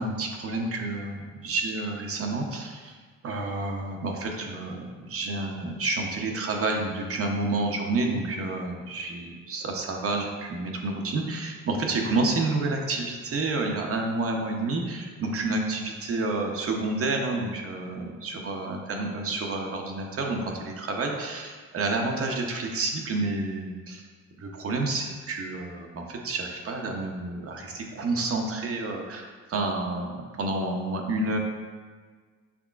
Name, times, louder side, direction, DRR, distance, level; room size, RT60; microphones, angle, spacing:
voice 1, 0.0-2.9 3.2-24.0 24.4-31.4, right 2 dB, 50° right, 1 dB, 0.7 m, -29 dB
6.0 x 3.5 x 2.4 m, 1.5 s
cardioid pair, 90°, 30 cm